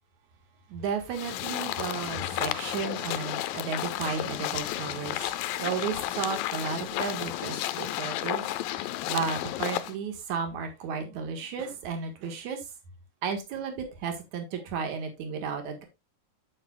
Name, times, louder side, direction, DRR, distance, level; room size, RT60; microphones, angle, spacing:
voice 1, 0.7-5.2 5.6-8.5 8.8-12.6 13.2-15.8, right 6 dB, 60° right, 2.9 m, -33 dB
sound 1, 1.1-9.9, left 14 dB, 90° left, 2.3 m, -32 dB
8.7 x 7.9 x 2.3 m
omnidirectional pair, 4.0 m